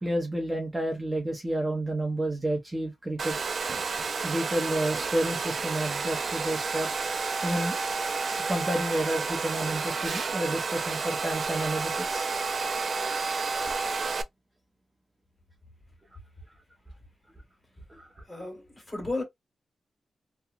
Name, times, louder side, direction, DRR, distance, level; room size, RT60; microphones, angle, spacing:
voice 1, 0.0-3.4 4.2-6.9 7.4-7.8 8.5-12.2 17.9-18.2, right 1 dB, 20° right, 0.7 m, -30 dB
Domestic sounds home sounds, 3.2-14.2, right 4 dB, 60° right, 0.3 m, -30 dB
voice 2, 18.3-19.2, left 2 dB, 25° left, 1.8 m, -33 dB
2.8 x 2.2 x 2.4 m
wide cardioid pair, 100°, 0 cm